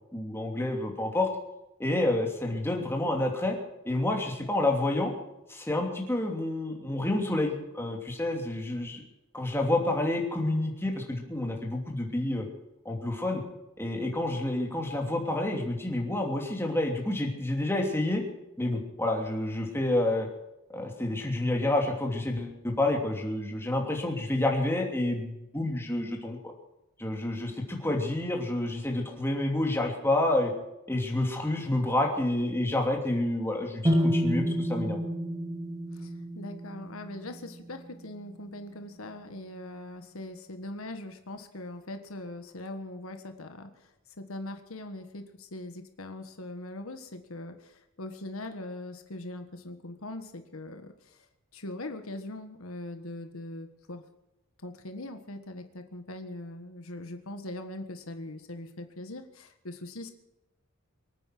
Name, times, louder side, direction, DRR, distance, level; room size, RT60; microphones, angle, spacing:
voice 1, 0.1-1.3 1.8-3.6 3.8-5.1 5.5-9.0 9.3-12.5 12.8-13.4 13.8-18.2 18.6-20.3 20.7-26.4 27.0-30.5 30.9-35.0, left 1 dB, 10° left, 1 dB, 2.9 m, -29 dB
sound 1, 33.8-37.8, equal, 20° right, 1.7 m, -29 dB
voice 2, 35.9-43.9 44.2-51.3 51.5-54.0 54.6-60.1, left 1 dB, 80° left, 7 dB, 1.5 m, -41 dB
24.5 x 9.4 x 6.1 m, 0.91 s
head